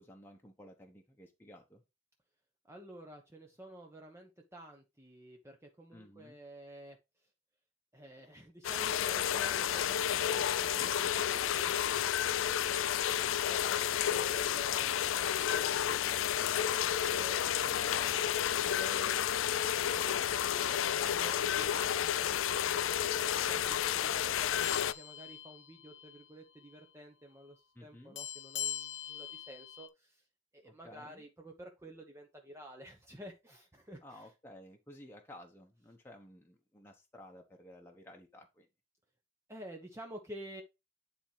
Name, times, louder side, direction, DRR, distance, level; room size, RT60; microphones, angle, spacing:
voice 1, 0.0-1.8 5.9-6.4 27.7-28.2 30.6-31.3 34.0-38.7, left 1 dB, 10° left, 1.1 m, -54 dB
voice 2, 2.6-7.3 7.9-12.5 13.0-18.1 18.6-19.3 19.7-30.2 30.5-34.3 39.5-40.6, right 1 dB, 15° right, 1.0 m, -51 dB
sound 1, 8.6-24.9, left 10 dB, 85° left, 0.4 m, -31 dB
sound 2, 24.6-26.3 26.6-26.8 28.2-29.9, left 10 dB, 70° left, 1.0 m, -42 dB
10.0 x 4.3 x 3.3 m
head